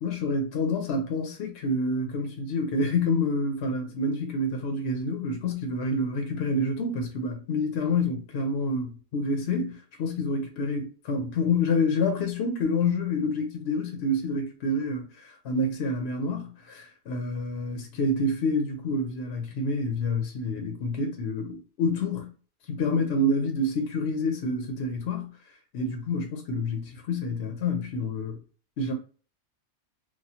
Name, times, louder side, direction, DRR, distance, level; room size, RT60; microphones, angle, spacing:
voice 1, 0.0-22.3 22.7-25.3 25.7-28.4 28.8-28.9, left 2 dB, 60° left, 0.7 m, -28 dB
2.9 x 2.2 x 2.8 m
omnidirectional pair, 1.5 m